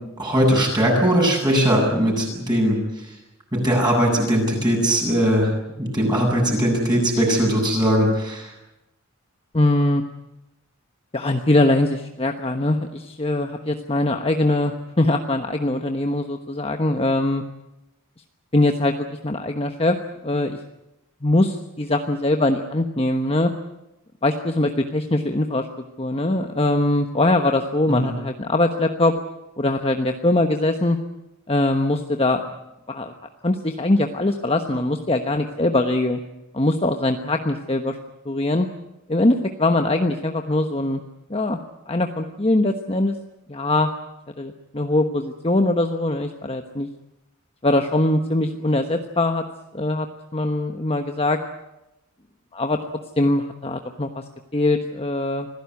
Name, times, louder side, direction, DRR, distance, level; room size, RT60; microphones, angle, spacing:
voice 1, 0.2-2.8 3.5-5.5 5.8-8.5 28.0-28.1, equal, 20° right, -1 dB, 7.9 m, -20 dB
voice 2, 9.5-10.0 11.1-17.4 18.5-20.0 20.2-20.6 21.2-23.5 24.2-25.7 26.0-29.1 29.6-31.0 31.5-32.4 32.9-33.1 33.4-36.2 36.5-38.0 38.2-38.7 39.1-41.0 41.3-41.6 41.9-43.2 43.5-43.9 44.4-46.9 47.6-49.4 49.7-51.4 52.5-52.8 53.2-54.2 54.5-55.5, left 2 dB, 25° left, 5 dB, 1.2 m, -22 dB
25.5 x 16.5 x 9.7 m, 0.94 s
head